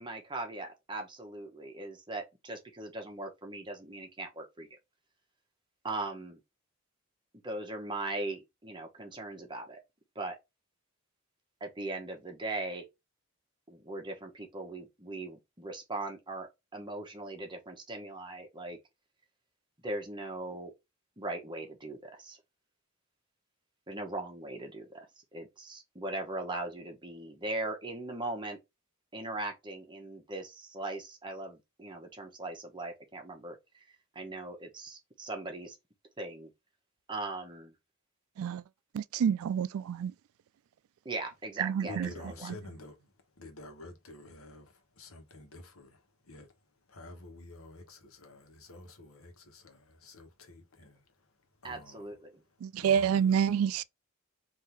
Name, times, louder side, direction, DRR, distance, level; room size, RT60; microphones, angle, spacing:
voice 1, 0.0-4.7 5.8-6.4 7.4-9.8 10.1-10.4 11.6-12.9 13.7-18.8 19.8-20.7 21.2-22.4 23.9-25.1 25.3-28.6 29.1-33.8 34.1-35.8 36.2-36.5 37.1-37.7 41.0-42.5 51.6-52.4, right 2 dB, 20° right, 1.0 m, -39 dB
voice 2, 38.9-40.1 41.6-42.1 52.6-53.8, right 8 dB, 85° right, 0.3 m, -28 dB
voice 3, 41.8-46.5 46.9-52.1 52.8-53.8, left 2 dB, 85° left, 1.2 m, -50 dB
3.7 x 2.7 x 4.5 m
head